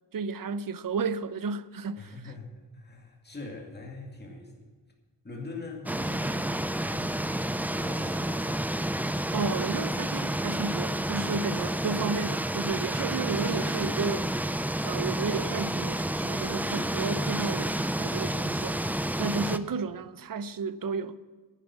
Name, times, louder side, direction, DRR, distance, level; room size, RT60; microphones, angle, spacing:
voice 1, 0.1-2.1 9.3-14.3 14.8-18.8 19.2-21.2, right 5 dB, 50° right, 0.7 m, -32 dB
voice 2, 2.0-4.8 5.2-8.6, left 3 dB, 25° left, 2.3 m, -43 dB
sound 1, 5.9-19.6, right 1 dB, 5° right, 0.4 m, -30 dB
11.0 x 10.0 x 7.2 m
wide cardioid pair, 125°, 43 cm